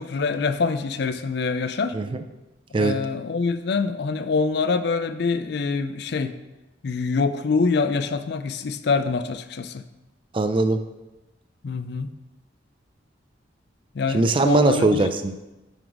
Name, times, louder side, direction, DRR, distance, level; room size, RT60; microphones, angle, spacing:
voice 1, 0.0-2.0 2.8-6.3 6.8-9.8 11.6-12.1 13.9-15.1, left 4 dB, 55° left, 11 dB, 0.4 m, -25 dB
voice 2, 10.3-10.8 14.1-15.4, right 2 dB, 25° right, 9 dB, 0.4 m, -20 dB
9.2 x 4.8 x 4.0 m, 1.0 s
head